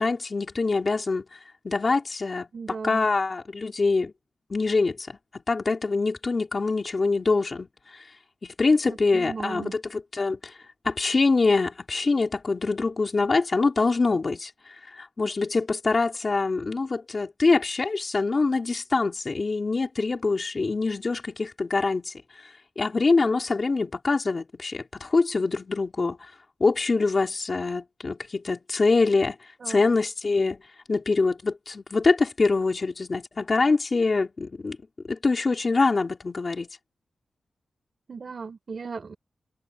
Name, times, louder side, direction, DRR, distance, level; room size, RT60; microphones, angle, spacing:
voice 1, 0.0-1.4 1.6-2.5 2.8-4.1 4.5-7.7 8.4-10.5 10.8-14.5 15.0-22.1 22.8-26.2 26.6-29.4 29.7-30.6 30.9-34.8 35.1-36.7, left 3 dB, 35° left, 4.0 m, -24 dB
voice 2, 2.5-3.1 8.9-9.7 29.6-29.8 38.1-39.2, right 5 dB, 45° right, 5.0 m, -36 dB
wide cardioid pair, 130°, 0 cm